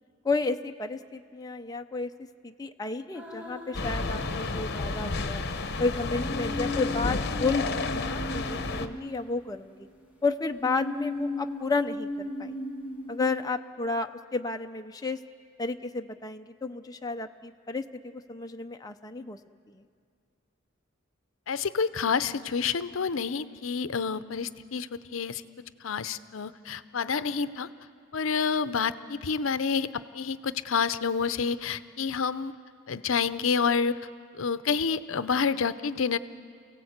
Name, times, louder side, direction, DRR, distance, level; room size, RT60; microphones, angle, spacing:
voice 1, 0.2-2.1 2.4-5.4 5.8-9.9 10.2-12.6 13.1-15.2 15.6-19.4 19.7-19.8, left 3 dB, 20° left, 5 dB, 0.5 m, -32 dB
sound 1, 3.1-5.3 6.1-9.8 10.6-13.4, left 1 dB, 10° right, 2.4 m, -37 dB
sound 2, 3.7-8.9, left 3 dB, 55° left, 1.0 m, -31 dB
voice 2, 21.5-25.4 25.8-27.7 28.1-29.9 30.1-32.5 32.9-33.9 34.4-36.2, left 6 dB, 75° left, 14 dB, 0.6 m, -28 dB
29.0 x 17.0 x 8.0 m, 2.2 s
head